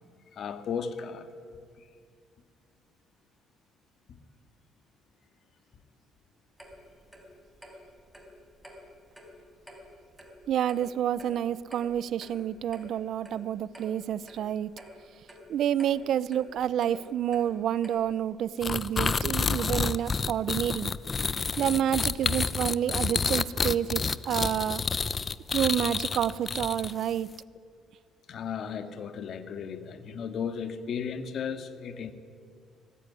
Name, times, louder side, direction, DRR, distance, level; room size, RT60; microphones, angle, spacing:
voice 1, 0.3-1.3 4.1-4.2 28.3-32.1, left 7 dB, 55° left, 9 dB, 2.1 m, -35 dB
Clock, 6.6-18.3, equal, 5° right, 4.4 m, -51 dB
voice 2, 10.5-14.7 15.5-20.9 21.6-24.8 25.5-27.3, right 10 dB, 60° right, 19 dB, 0.7 m, -29 dB
sound 1, 18.6-27.1, left 5 dB, 30° left, 0.7 m, -29 dB
25.0 x 19.5 x 9.9 m, 2.2 s
cardioid pair, 125°, 0 cm